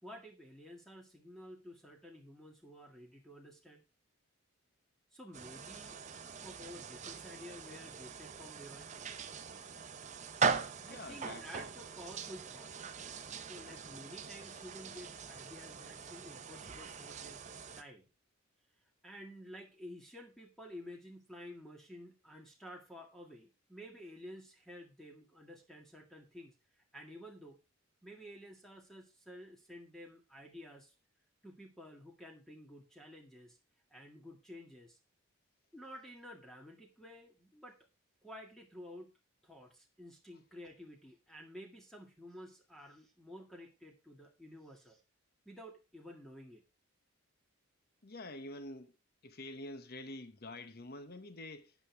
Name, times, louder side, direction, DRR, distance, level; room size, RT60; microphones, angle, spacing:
voice 1, 0.0-3.8 5.1-6.0 6.4-9.0 10.9-12.7 13.3-17.4 17.8-18.1 19.0-26.5 26.9-27.6 28.0-30.9 31.4-33.6 33.9-35.0 35.7-37.8 38.2-39.1 39.4-45.0 45.5-46.6, equal, ahead, 2.0 m, -52 dB
sound 1, 5.3-17.8, right 5 dB, 30° right, 0.7 m, -41 dB
voice 2, 10.7-11.5 48.0-49.0 49.2-51.7, left 2 dB, 45° left, 0.9 m, -47 dB
12.5 x 9.2 x 3.4 m
head